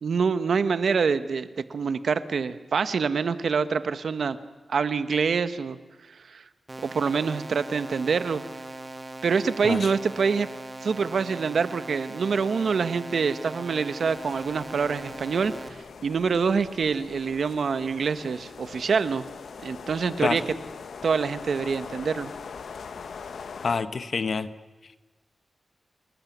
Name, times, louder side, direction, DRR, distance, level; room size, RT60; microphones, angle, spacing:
voice 1, 0.0-4.4 4.7-5.8 6.3-6.4 6.8-8.4 9.2-10.5 10.8-19.2 19.6-20.4 21.0-22.3, right 5 dB, 80° right, 12 dB, 1.4 m, -26 dB
sound 1, 6.7-15.7, right 2 dB, 30° right, 2.8 m, -40 dB
sound 2, 14.0-23.8, left 6 dB, 85° left, 1.2 m, -42 dB
voice 2, 23.6-24.5, left 4 dB, 65° left, 12 dB, 1.4 m, -27 dB
28.5 x 20.0 x 9.5 m, 1.2 s
cardioid pair, 65°, 0 cm